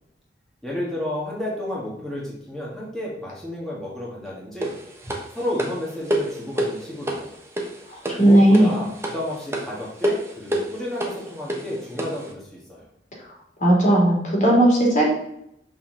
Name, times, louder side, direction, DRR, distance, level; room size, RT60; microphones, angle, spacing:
voice 1, 0.6-4.8 5.3-7.3 8.2-12.9, left 1 dB, ahead, -6 dB, 1.7 m, -31 dB
sound 1, 4.6-12.3, right 1 dB, 15° right, 1.2 m, -29 dB
voice 2, 7.9-8.7 13.6-15.1, right 1 dB, 45° left, -2 dB, 2.7 m, -16 dB
6.2 x 5.6 x 3.9 m, 0.79 s
head